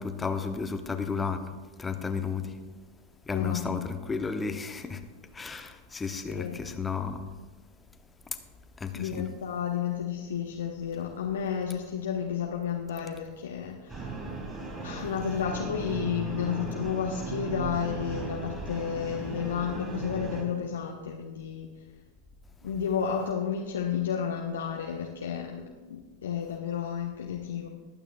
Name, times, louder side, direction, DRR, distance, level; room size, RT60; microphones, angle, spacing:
voice 1, 0.0-1.4 1.8-2.5 3.3-5.0 5.3-7.3 8.8-9.2, left 5 dB, 15° left, 8 dB, 0.8 m, -33 dB
voice 2, 3.3-3.9 6.2-6.6 8.9-14.1 14.8-21.7 22.6-27.7, left 8 dB, 65° left, 0 dB, 0.9 m, -32 dB
sound 1, 13.9-20.4, right 3 dB, 15° right, 4.1 m, -37 dB
20.5 x 8.9 x 2.5 m, 1.3 s
figure-of-eight pair, 90°, 0 cm